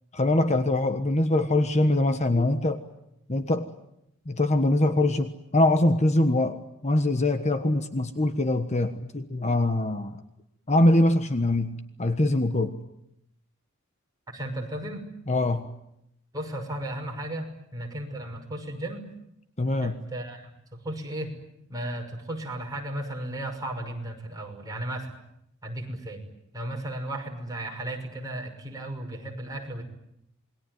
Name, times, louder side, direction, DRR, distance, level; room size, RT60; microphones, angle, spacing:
voice 1, 0.1-2.8 3.3-3.7 4.3-10.2 10.7-12.8 15.3-15.7 19.6-19.9, left 1 dB, 35° left, 8 dB, 1.3 m, -23 dB
voice 2, 14.3-15.0 16.3-19.0 19.8-21.4 21.7-25.1 25.6-26.2 26.5-29.8, right 1 dB, 20° right, 1 dB, 6.0 m, -35 dB
28.0 x 22.0 x 9.4 m, 0.81 s
head